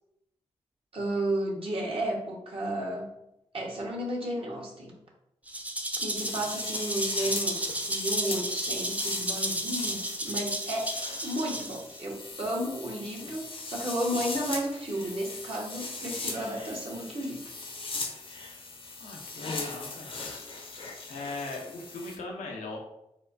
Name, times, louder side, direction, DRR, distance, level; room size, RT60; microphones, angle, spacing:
voice 1, 0.9-3.1 3.5-4.9 5.9-10.9 11.2-17.5, right 1 dB, 50° right, -2 dB, 1.2 m, -33 dB
Rattle (instrument), 5.5-12.0, right 1 dB, 10° right, 0.5 m, -33 dB
sound 1, 6.1-22.2, left 3 dB, 45° left, 0.7 m, -39 dB
voice 2, 19.0-20.1 21.1-22.8, left 3 dB, 85° left, 0 dB, 0.6 m, -39 dB
4.2 x 2.1 x 2.6 m, 0.83 s
supercardioid pair, 45°, 12 cm